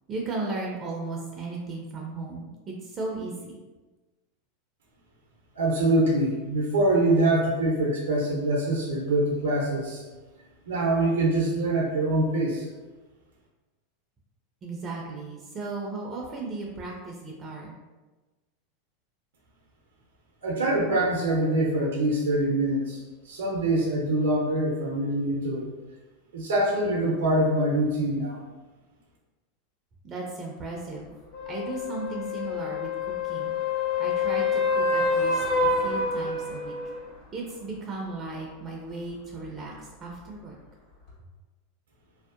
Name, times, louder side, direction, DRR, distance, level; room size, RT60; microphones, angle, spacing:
voice 1, 0.1-3.6 14.6-17.7 30.0-31.1 31.5-33.5 34.0-36.7 37.3-40.6, right 3 dB, 30° right, -1 dB, 0.4 m, -36 dB
voice 2, 5.5-10.0 10.7-12.7 20.4-23.0 23.2-25.7 26.3-28.4, right 1 dB, 90° right, -3 dB, 0.5 m, -24 dB
sound 1, 31.3-37.0 41.1-41.2, left 3 dB, 65° left, 1.4 m, -27 dB
2.6 x 2.0 x 2.4 m, 1.2 s
hypercardioid pair, 105°, 0 cm